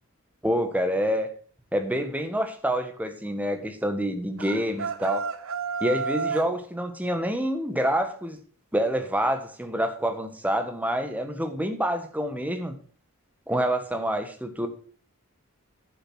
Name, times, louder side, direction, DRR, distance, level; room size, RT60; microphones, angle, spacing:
voice 1, 0.4-1.3 1.7-5.3 5.8-8.4 8.7-12.7 13.5-14.7, equal, 5° right, 7 dB, 1.5 m, -27 dB
sound 1, 4.4-6.5, right 4 dB, 65° right, 0.8 m, -30 dB
11.0 x 7.0 x 6.3 m, 0.42 s
head